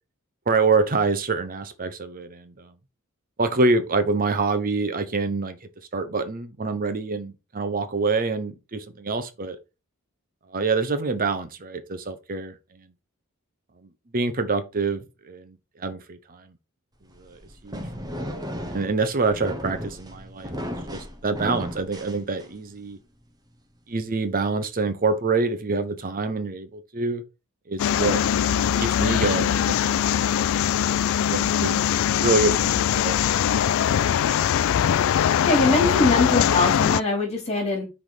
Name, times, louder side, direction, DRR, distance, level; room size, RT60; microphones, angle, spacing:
voice 1, 0.5-2.7 3.4-9.6 10.5-12.9 14.1-16.5 17.2-18.2 18.7-23.0 23.9-27.2 27.7-28.2 28.6-30.0 31.1-31.8 32.1-33.6, right 3 dB, 40° right, 0.8 m, -26 dB
sound 1, 17.1-22.8, equal, 20° right, 1.1 m, -35 dB
sound 2, 27.8-37.0, left 9 dB, 70° left, 0.3 m, -22 dB
voice 2, 35.4-37.9, left 2 dB, 30° left, 2.8 m, -22 dB
6.0 x 3.6 x 5.0 m
head